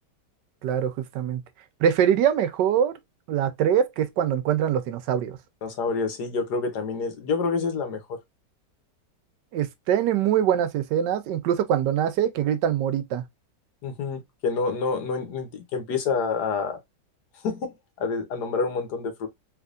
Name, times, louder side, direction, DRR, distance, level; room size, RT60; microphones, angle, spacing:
voice 1, 0.6-1.4 1.8-3.0 3.3-5.4 9.5-13.2, right 9 dB, 85° right, 1.3 m, -23 dB
voice 2, 5.6-8.2 13.8-16.8 17.4-19.3, left 4 dB, 70° left, 1.5 m, -28 dB
3.4 x 3.3 x 2.4 m
omnidirectional pair, 1.9 m